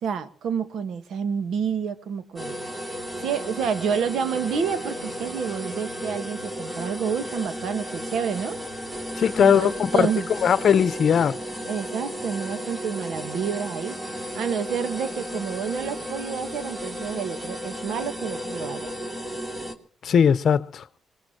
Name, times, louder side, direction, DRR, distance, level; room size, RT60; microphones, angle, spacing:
voice 1, 0.0-2.6 3.2-8.6 9.4-10.3 11.7-18.9, right 7 dB, 70° right, 1.5 m, -29 dB
sound 1, 2.4-19.8, equal, 15° right, 2.5 m, -34 dB
voice 2, 9.1-10.1 10.4-11.3 20.0-20.8, left 7 dB, 55° left, 0.8 m, -19 dB
24.5 x 20.0 x 3.0 m
cardioid pair, 90°, 0 cm